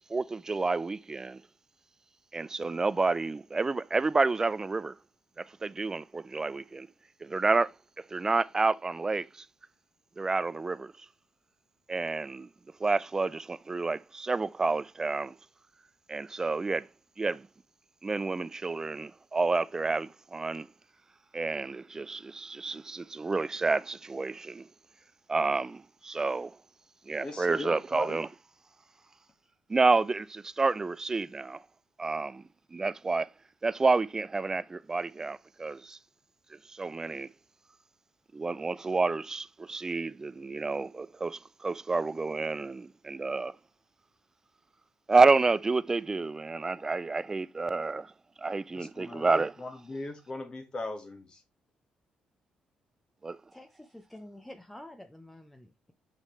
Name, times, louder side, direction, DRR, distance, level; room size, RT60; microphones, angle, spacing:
voice 1, 0.1-1.4 2.3-5.0 5.4-6.9 7.2-9.5 10.2-11.1 11.9-12.5 12.8-15.3 16.1-16.9 17.2-17.5 18.0-20.7 21.3-24.7 25.3-26.6 27.1-28.3 29.7-31.6 32.0-32.4 32.7-33.3 33.6-36.0 36.7-37.3 38.3-43.6 45.1-48.1 48.4-49.5 53.2-53.4, right 3 dB, 25° right, 0.4 m, -29 dB
voice 2, 27.2-28.2 48.7-51.4, left 2 dB, 35° left, 1.6 m, -39 dB
voice 3, 53.5-55.9, left 1 dB, 10° left, 0.7 m, -49 dB
6.2 x 5.8 x 3.2 m
cardioid pair, 85°, 2 cm